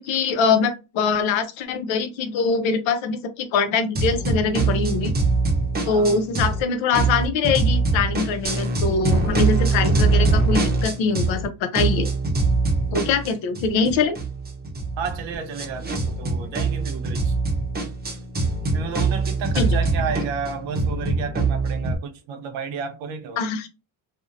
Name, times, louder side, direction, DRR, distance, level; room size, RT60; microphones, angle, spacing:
voice 1, 0.0-5.1 5.9-12.1 12.9-14.2 19.6-19.7 23.4-23.7, left 5 dB, 85° left, 0.6 m, -23 dB
sound 1, 4.0-6.6 6.9-11.5 11.7-22.0, right 3 dB, 20° right, 0.6 m, -23 dB
voice 2, 5.9-6.2 15.0-17.4 18.7-23.5, right 6 dB, 85° right, 0.7 m, -32 dB
2.6 x 2.1 x 2.4 m
cardioid pair, 100°, 45 cm